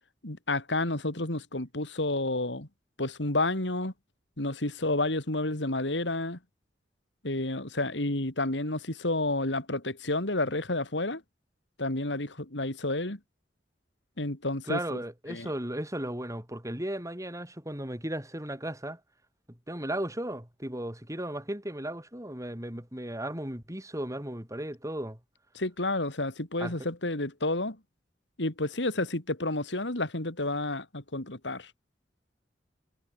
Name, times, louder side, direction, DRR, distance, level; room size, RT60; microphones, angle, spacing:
voice 1, 0.2-2.7 3.0-3.9 4.4-6.4 7.2-11.2 11.8-13.2 14.2-15.0 15.3-15.5 25.5-27.8 28.4-31.7, left 2 dB, 80° left, 3.6 m, -30 dB
voice 2, 14.7-19.0 19.7-25.2 26.6-26.7, right 1 dB, 20° right, 6.8 m, -35 dB
head